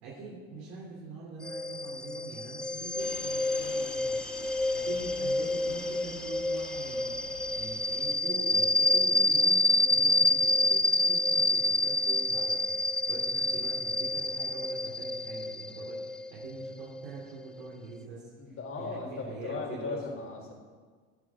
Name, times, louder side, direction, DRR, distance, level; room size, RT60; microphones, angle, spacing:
voice 1, 0.0-4.3 4.7-18.3 18.8-20.0, right 4 dB, 80° right, -6 dB, 3.6 m, -44 dB
sound 1, 1.4-17.7, left 1 dB, 5° left, 0.4 m, -28 dB
sound 2, 3.0-8.1, left 4 dB, 75° left, 3.0 m, -47 dB
voice 2, 18.4-20.5, left 4 dB, 45° left, 0 dB, 3.9 m, -37 dB
17.5 x 10.5 x 3.8 m, 1.5 s
supercardioid pair, 90°, 30 cm